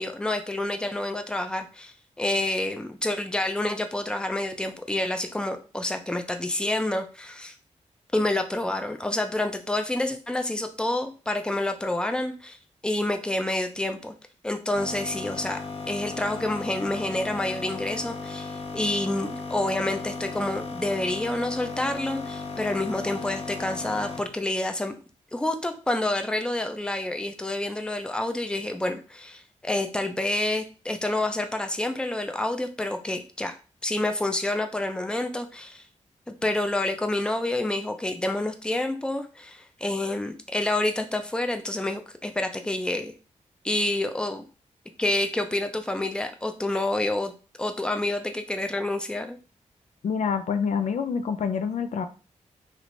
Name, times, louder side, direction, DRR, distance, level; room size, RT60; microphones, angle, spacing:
voice 1, 0.0-7.5 8.1-12.6 12.8-14.1 14.4-15.6 15.9-24.9 25.3-33.5 33.8-35.8 36.3-43.1 43.6-44.4 45.0-47.3 47.6-49.4, left 1 dB, 5° left, 6 dB, 0.5 m, -28 dB
sound 1, 14.7-24.3, left 3 dB, 50° left, 0.8 m, -36 dB
voice 2, 50.0-52.0, left 6 dB, 65° left, 7 dB, 0.4 m, -27 dB
3.2 x 3.1 x 2.6 m, 0.35 s
cardioid pair, 65°, 13 cm